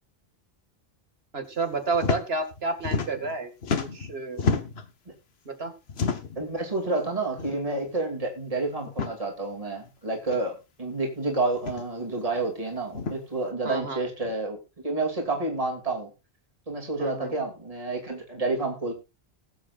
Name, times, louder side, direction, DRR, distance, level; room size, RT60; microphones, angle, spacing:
voice 1, 1.3-3.5 3.9-4.4 5.5-5.7 13.6-14.0 17.0-17.3, right 3 dB, 80° right, 7 dB, 2.2 m, -30 dB
sound 1, 1.9-2.2 2.5-3.4 3.6-4.9 5.9-6.4 7.4-7.5 7.9-8.0 8.8-9.1 10.3-10.4 11.5-11.8 12.9-13.2, left 5 dB, 80° left, 1.4 m, -29 dB
voice 2, 6.4-14.6 14.8-16.1 16.7-18.9, right 2 dB, 35° right, 1 dB, 2.7 m, -29 dB
21.0 x 7.7 x 2.4 m, 0.26 s
omnidirectional pair, 1.0 m